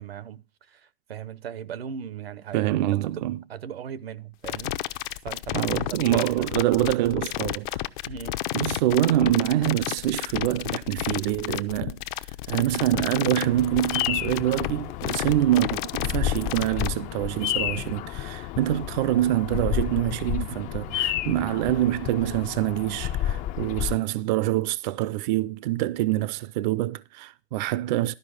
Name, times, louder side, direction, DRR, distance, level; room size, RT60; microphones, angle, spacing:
voice 1, 0.0-2.8 3.5-6.5 8.1-8.4, right 8 dB, 85° right, 1.0 m, -38 dB
voice 2, 2.5-3.4 5.5-7.8 8.5-12.0 12.5-28.1, right 14 dB, 50° right, 0.5 m, -25 dB
sound 1, 4.4-16.9, left 14 dB, 55° left, 0.8 m, -31 dB
Bird vocalization bird call bird song, 13.4-24.0, left 12 dB, 25° left, 0.4 m, -31 dB
12.5 x 5.0 x 6.3 m
hypercardioid pair, 125°, 30 cm